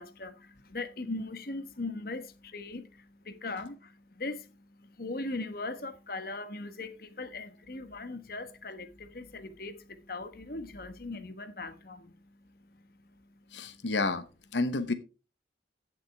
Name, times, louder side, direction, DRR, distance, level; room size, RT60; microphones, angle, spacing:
voice 1, 0.0-13.8, left 2 dB, 55° left, 1.3 m, -40 dB
voice 2, 13.5-14.2 14.5-14.9, left 3 dB, 80° left, 1.0 m, -29 dB
15.5 x 7.4 x 3.5 m
head